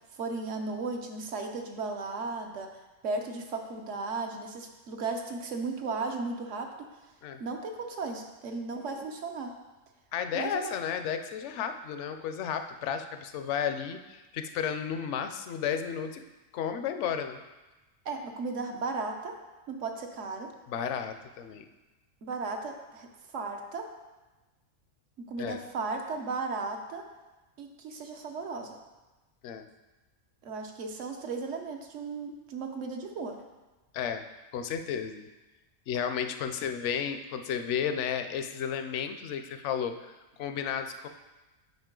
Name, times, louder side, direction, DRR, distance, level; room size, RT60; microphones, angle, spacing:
voice 1, 0.2-2.7 3.0-6.9 7.4-9.5 10.3-10.7 18.0-19.3 19.7-20.5 22.2-23.9 25.2-27.1 27.6-28.8 30.4-33.4, right 3 dB, 75° right, 3 dB, 1.1 m, -35 dB
voice 2, 10.1-16.2 16.5-17.4 20.7-21.7 25.4-25.6 29.4-29.7 33.9-34.2 34.5-35.3 35.9-41.1, left 8 dB, 70° left, 8 dB, 0.9 m, -33 dB
8.0 x 5.2 x 3.7 m, 1.1 s
omnidirectional pair, 1.3 m